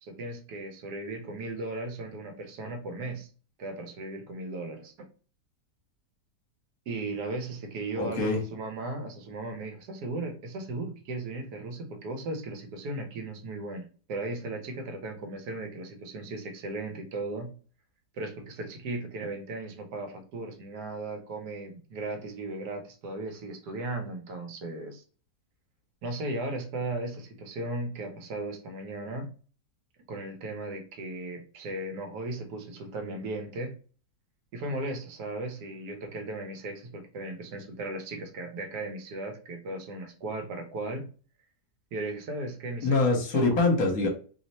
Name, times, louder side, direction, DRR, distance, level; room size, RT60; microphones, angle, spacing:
voice 1, 0.0-3.3 3.6-5.1 6.9-17.5 18.1-25.0 26.0-29.3 30.1-33.8 34.5-41.1 41.9-42.9 43.3-43.5, right 2 dB, 70° right, 5 dB, 1.2 m, -36 dB
voice 2, 7.9-8.4 42.8-44.1, left 3 dB, 60° left, 2 dB, 1.2 m, -24 dB
3.0 x 2.1 x 4.0 m, 0.39 s
omnidirectional pair, 1.9 m